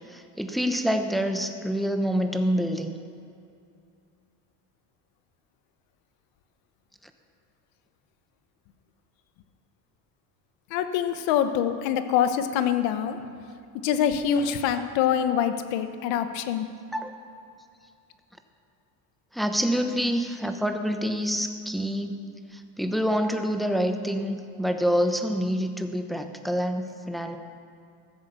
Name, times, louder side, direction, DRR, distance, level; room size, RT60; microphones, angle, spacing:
voice 1, 0.1-3.0 16.9-17.1 19.3-22.2 22.5-27.4, equal, ahead, 6 dB, 0.8 m, -27 dB
voice 2, 10.7-13.2 13.8-16.7, left 9 dB, 75° left, 9 dB, 1.1 m, -25 dB
15.0 x 7.9 x 6.8 m, 2.5 s
cardioid pair, 125°, 46 cm